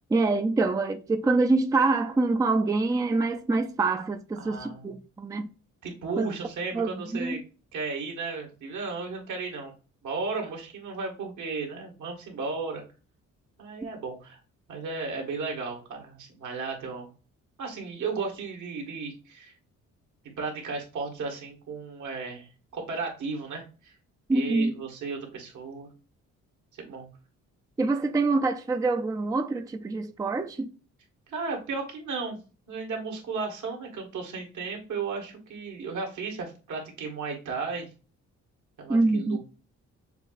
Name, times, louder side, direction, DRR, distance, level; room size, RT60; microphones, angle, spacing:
voice 1, 0.1-5.5 6.2-6.3 6.7-7.4 13.8-13.9 24.3-24.7 27.8-30.7 38.9-39.4, right 3 dB, 10° right, 0.4 m, -25 dB
voice 2, 4.4-4.9 5.8-7.4 7.7-9.7 10.0-12.8 13.6-14.4 14.7-17.1 17.6-19.5 20.4-23.9 24.3-25.9 26.7-27.1 31.3-32.4 32.7-37.9 38.8-39.4, right 4 dB, 75° right, 1.8 m, -34 dB
6.7 x 2.8 x 2.5 m
cardioid pair, 90°, 30 cm